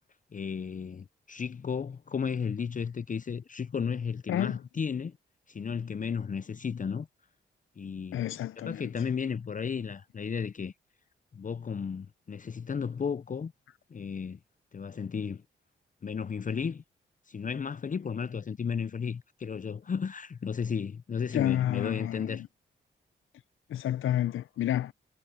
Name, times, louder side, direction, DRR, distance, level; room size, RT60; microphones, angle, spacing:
voice 1, 0.3-5.2 5.5-7.1 7.8-8.2 8.6-10.7 11.3-13.5 13.9-14.4 14.7-15.4 16.0-16.8 17.3-22.4, left 6 dB, 40° left, 0.7 m, -34 dB
voice 2, 8.1-9.0 21.3-22.4 23.7-24.9, left 12 dB, 75° left, 0.7 m, -30 dB
supercardioid pair, 50°, 21 cm